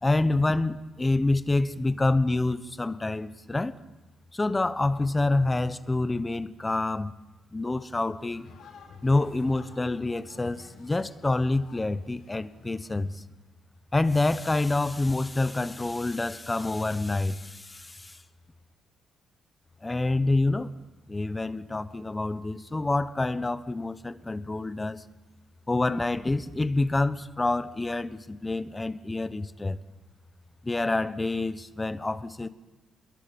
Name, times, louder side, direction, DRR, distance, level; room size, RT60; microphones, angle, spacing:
voice 1, 0.0-3.8 4.3-7.1 7.5-8.5 9.0-13.2 13.9-18.2 19.8-20.7 21.1-25.0 25.7-29.8 30.6-32.5, left 2 dB, 15° left, 1.0 m, -27 dB
sound 1, 8.2-13.2, left 5 dB, 60° left, 7.1 m, -52 dB
30.0 x 21.5 x 7.1 m
cardioid pair, 150°, 0 cm